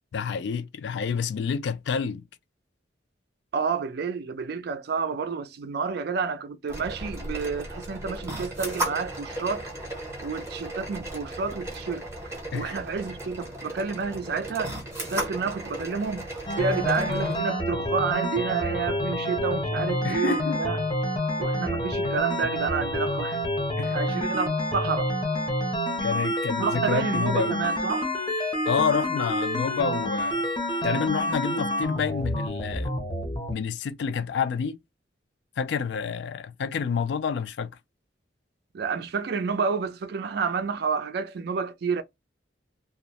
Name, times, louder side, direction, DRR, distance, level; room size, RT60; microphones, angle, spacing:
voice 1, 0.1-2.2 12.5-12.8 20.0-20.6 22.0-22.1 23.8-24.4 26.0-27.6 28.7-30.5 30.8-33.0 33.5-34.8 35.6-37.8, left 6 dB, 65° left, 0.3 m, -29 dB
voice 2, 3.5-9.7 10.2-12.0 12.5-14.8 15.1-16.3 16.6-20.8 21.4-23.4 23.9-25.1 26.6-28.1 38.7-42.0, right 5 dB, 55° right, 0.3 m, -29 dB
sound 1, 6.7-17.4, right 1 dB, 15° right, 0.7 m, -35 dB
sound 2, 16.5-33.5, equal, 25° left, 0.6 m, -28 dB
2.3 x 2.0 x 2.7 m
head